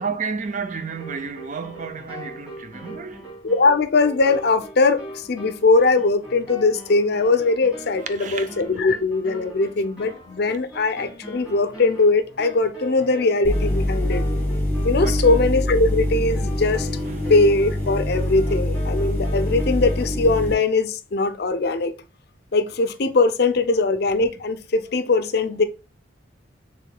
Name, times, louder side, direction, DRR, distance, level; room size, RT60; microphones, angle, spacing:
voice 1, 0.0-3.3 8.1-8.5 14.9-15.3 17.0-17.3, right 5 dB, 40° right, 0.4 m, -32 dB
sound 1, 0.9-20.1, right 1 dB, 5° right, 2.5 m, -40 dB
voice 2, 3.4-14.2 14.8-16.9 17.3-21.9 22.5-25.6, left 3 dB, 55° left, 0.5 m, -20 dB
sound 2, 13.4-20.5, left 1 dB, 10° left, 1.3 m, -24 dB
6.5 x 3.6 x 2.2 m
head